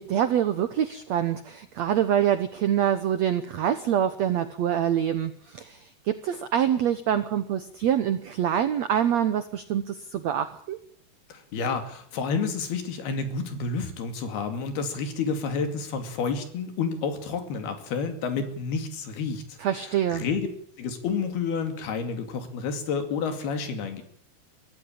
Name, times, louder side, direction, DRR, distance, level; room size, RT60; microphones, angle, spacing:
voice 1, 0.0-5.8 6.1-10.8 19.6-20.2, right 10 dB, 80° right, 11 dB, 1.5 m, -25 dB
voice 2, 11.3-20.5 20.8-24.0, left 5 dB, 75° left, 7 dB, 4.4 m, -30 dB
23.0 x 16.0 x 8.7 m, 0.62 s
omnidirectional pair, 4.5 m